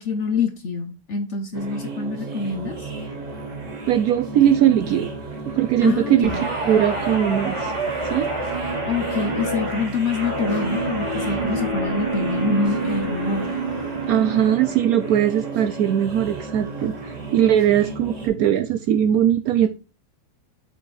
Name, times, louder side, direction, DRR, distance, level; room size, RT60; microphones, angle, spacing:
voice 1, 0.0-2.9 5.8-6.4 8.9-13.6, left 4 dB, 55° left, 0.9 m, -26 dB
sound 1, 1.5-18.3, right 3 dB, 45° right, 1.9 m, -33 dB
voice 2, 3.9-5.1 5.5-7.7 8.1-8.3 14.1-17.0 17.3-19.7, right 10 dB, 70° right, 0.9 m, -20 dB
Guitar, 6.2-14.8 15.2-15.5, right 2 dB, 20° right, 1.2 m, -28 dB
6.9 x 4.3 x 4.8 m
omnidirectional pair, 1.9 m